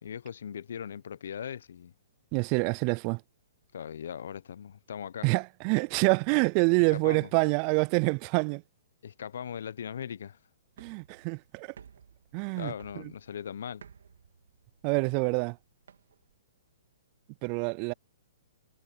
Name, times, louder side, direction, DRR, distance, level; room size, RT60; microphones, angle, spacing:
voice 1, 0.0-1.9 3.7-5.3 6.9-7.3 9.0-10.4 12.6-13.8, left 8 dB, 70° left, 1.0 m, -39 dB
voice 2, 2.3-3.2 5.2-8.6 10.8-11.7 12.3-13.0 14.8-15.6 17.4-17.9, right 35 dB, 40° right, 0.4 m, -27 dB
sound 1, 10.7-16.4, right 7 dB, 75° right, 3.6 m, -56 dB
hypercardioid pair, 125°, 0 cm